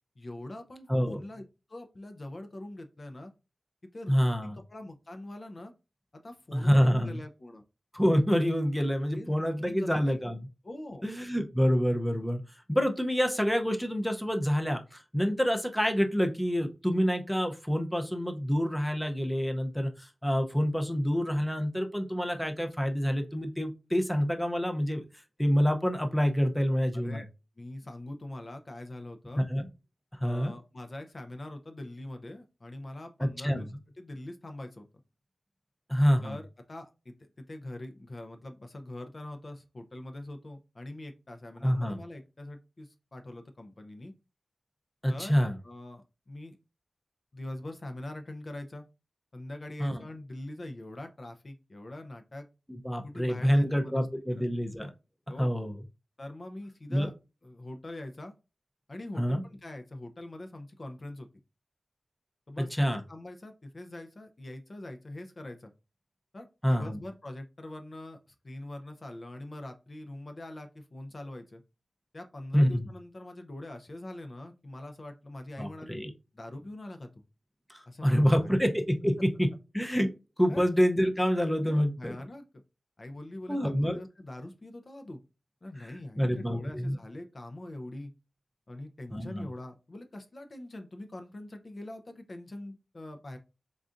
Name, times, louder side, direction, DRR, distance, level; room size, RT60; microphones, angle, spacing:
voice 1, 0.2-1.4 1.7-3.3 3.8-5.7 6.1-7.6 8.8-9.3 9.6-10.2 10.6-11.1 26.9-27.3 27.6-29.4 30.2-34.9 36.2-44.1 45.1-46.6 47.3-48.8 49.3-52.5 53.0-54.4 55.3-55.5 56.2-57.1 57.4-58.3 58.9-61.3 62.5-62.7 63.1-65.7 66.3-68.2 68.4-71.6 72.1-76.0 76.3-77.3 77.9-78.6 80.5-80.6 81.6-82.4 83.0-85.2 85.6-88.1 88.7-93.4, left 1 dB, 45° left, 6 dB, 0.6 m, -43 dB
voice 2, 0.9-1.2 4.1-4.6 6.5-7.2 7.9-10.5 11.0-12.4 12.7-25.1 25.4-27.2 29.4-29.7 30.2-30.5 33.2-33.6 35.9-36.4 41.6-42.0 45.0-45.6 49.8-50.0 52.8-54.9 55.4-55.7 56.9-57.1 59.2-59.4 62.6-63.0 66.6-67.0 72.5-72.9 75.6-76.1 77.7-79.5 79.7-80.1 80.4-82.2 83.5-84.0 85.8-87.0 89.1-89.5, equal, 5° left, 5 dB, 0.6 m, -27 dB
4.0 x 3.6 x 2.5 m, 0.28 s
wide cardioid pair, 80°, 0 cm